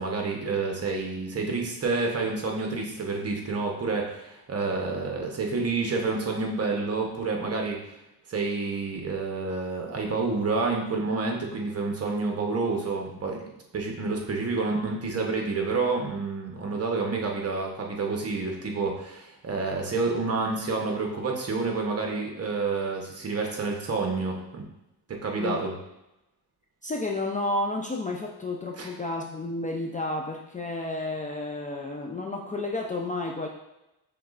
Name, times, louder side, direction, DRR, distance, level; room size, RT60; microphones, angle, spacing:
voice 1, 0.0-7.9 8.3-13.4 13.7-24.6 25.1-25.7 28.8-28.9, right 3 dB, 35° right, 1 dB, 1.0 m, -29 dB
voice 2, 26.8-33.5, left 2 dB, 20° left, 0 dB, 0.4 m, -31 dB
5.7 x 3.1 x 2.4 m, 0.91 s
cardioid pair, 110°, 41 cm